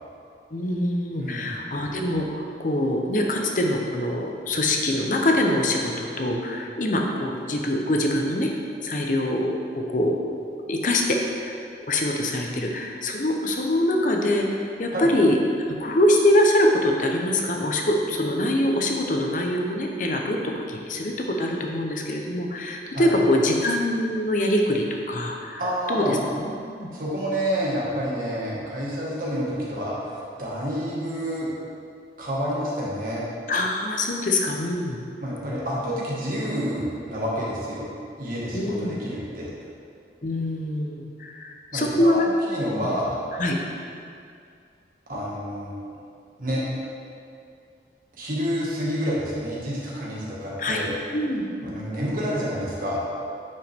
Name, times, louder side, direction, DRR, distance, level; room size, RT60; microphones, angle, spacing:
voice 1, 0.5-8.5 8.8-10.2 10.5-11.5 11.9-15.4 15.7-25.6 25.9-26.2 26.4-26.5 26.8-26.9 33.5-35.0 38.5-38.9 40.2-42.3 42.7-42.9 43.4-43.6 50.6-50.8 51.1-51.7, left 1 dB, 45° left, 1 dB, 0.8 m, -24 dB
voice 2, 1.2-1.6 14.9-15.1 22.9-23.1 25.6-26.3 26.9-31.5 32.2-33.2 35.2-37.9 38.2-39.5 41.7-43.2 45.1-45.8 46.4-46.8 48.1-50.9 51.6-53.0, equal, 50° right, -6 dB, 1.8 m, -28 dB
9.2 x 5.4 x 3.6 m, 2.3 s
head